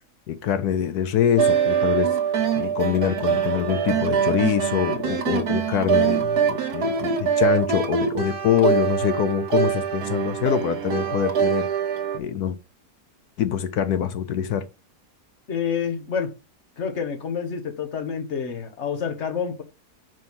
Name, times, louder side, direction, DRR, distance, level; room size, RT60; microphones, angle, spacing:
voice 1, 0.3-2.2 2.6-11.7 12.1-12.6 13.4-14.7, left 9 dB, 75° left, 1.1 m, -24 dB
sound 1, 1.4-12.2, right 7 dB, 70° right, 1.6 m, -23 dB
voice 2, 15.5-16.3 16.8-19.6, left 7 dB, 45° left, 1.4 m, -28 dB
5.4 x 5.3 x 5.6 m
omnidirectional pair, 1.7 m